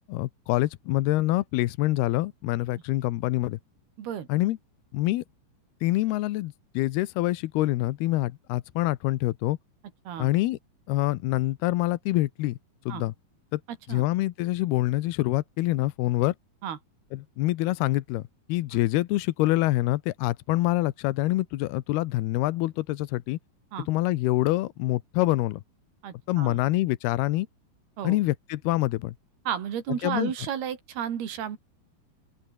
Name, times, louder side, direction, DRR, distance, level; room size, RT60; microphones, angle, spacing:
voice 1, 0.1-3.6 4.3-4.6 4.9-5.2 5.8-9.6 10.2-10.6 10.9-12.6 12.9-13.1 13.5-13.6 13.9-16.3 17.1-18.2 18.5-23.4 23.9-25.6 26.3-27.5 28.0-29.1 30.0-30.3, left 17 dB, 85° left, 2.9 m, -26 dB
voice 2, 4.0-4.3 10.1-10.3 12.9-13.0 13.9-14.0 16.6-16.8 18.7-18.8 23.7-23.9 26.0-26.6 28.0-28.2 29.5-31.6, right 9 dB, 75° right, 4.6 m, -33 dB
open air
omnidirectional pair, 4.5 m